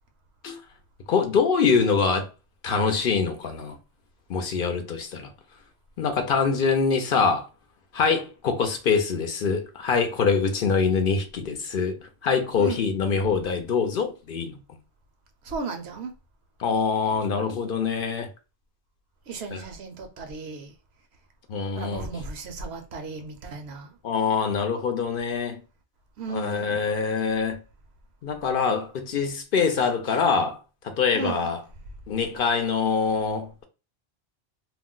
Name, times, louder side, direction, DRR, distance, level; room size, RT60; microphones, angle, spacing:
voice 1, 1.1-2.3 2.6-3.8 4.3-5.3 6.0-7.5 7.9-12.0 12.2-14.6 16.6-18.3 19.5-19.6 21.5-22.1 24.0-25.6 26.3-27.6 28.2-30.6 30.8-31.6 32.1-33.6, left 5 dB, 60° left, 0.7 m, -24 dB
voice 2, 12.6-12.9 15.4-16.1 19.3-20.7 21.8-23.9 26.2-26.9 31.1-31.6, right 4 dB, 75° right, 0.9 m, -35 dB
2.5 x 2.1 x 3.7 m
omnidirectional pair, 1.1 m